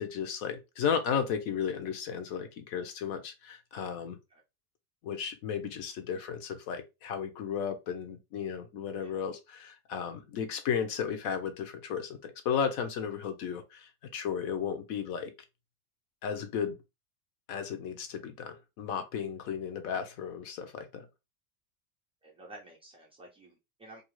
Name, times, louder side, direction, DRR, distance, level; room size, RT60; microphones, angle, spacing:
voice 1, 0.0-4.2 5.0-15.3 16.2-16.8 17.5-21.1, left 7 dB, 50° left, 0.7 m, -34 dB
voice 2, 22.2-24.0, right 1 dB, 15° right, 0.4 m, -51 dB
2.5 x 2.3 x 3.0 m
supercardioid pair, 135°, 43 cm